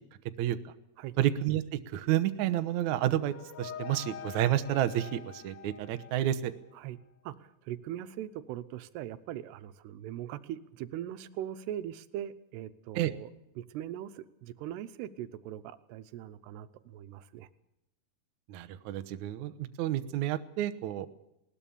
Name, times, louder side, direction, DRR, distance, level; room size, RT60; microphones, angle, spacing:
voice 1, 1.2-6.5 12.9-13.1 18.5-21.1, right 12 dB, 70° right, 10 dB, 1.8 m, -30 dB
sound 1, 2.8-6.7, left 8 dB, 85° left, 3.5 m, -46 dB
voice 2, 7.2-13.3 13.6-17.5, right 11 dB, 90° right, 12 dB, 3.0 m, -41 dB
20.0 x 19.0 x 7.1 m, 0.85 s
omnidirectional pair, 4.6 m